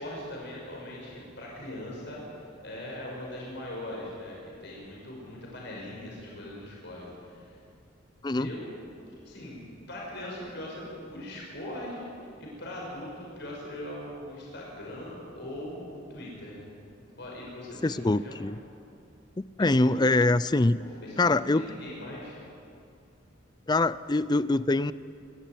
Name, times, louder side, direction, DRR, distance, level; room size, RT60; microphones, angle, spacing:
voice 1, 0.0-7.6 8.4-8.7 9.2-9.6 9.9-16.7 17.2-18.4 19.6-20.0 20.8-22.4, left 1 dB, 55° left, -3 dB, 5.9 m, -40 dB
voice 2, 17.8-18.6 19.4-20.8 21.2-21.7 23.7-24.9, left 2 dB, 20° left, 17 dB, 0.4 m, -24 dB
27.0 x 13.5 x 9.3 m, 2.5 s
head